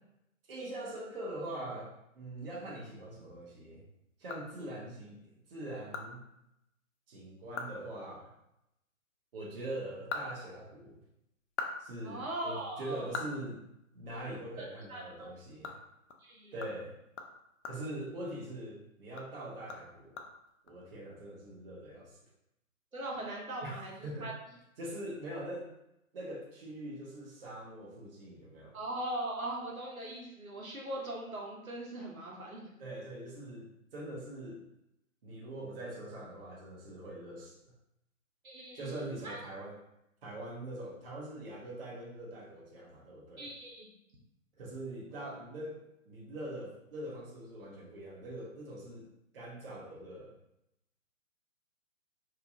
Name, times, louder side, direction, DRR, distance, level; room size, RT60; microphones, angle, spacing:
voice 1, 0.5-3.8 4.2-6.2 7.1-8.3 9.3-11.0 11.8-13.6 13.9-15.7 16.5-16.9 17.7-20.2 20.6-22.1 23.6-24.3 24.8-25.7 26.1-28.8 32.8-34.6 35.2-37.5 38.7-39.8 40.2-43.5 44.6-49.1 49.3-50.3, right 1 dB, 45° right, -4 dB, 0.7 m, -43 dB
sound 1, 3.9-5.0 5.4-5.5 5.9-6.1 6.4-6.5 6.9-7.0 7.4-7.8 8.1-8.2 9.7-11.0 11.4-14.3 14.6-14.7 15.1-18.7 19.1-20.7, left 4 dB, 60° left, 0.5 m, -44 dB
voice 2, 12.0-13.0 14.6-15.3 16.2-16.5 22.9-24.3 28.7-32.7 38.4-39.4 43.4-43.9, right 1 dB, 85° right, -3 dB, 1.0 m, -40 dB
2.7 x 2.2 x 2.7 m, 0.82 s
figure-of-eight pair, 135°, 41 cm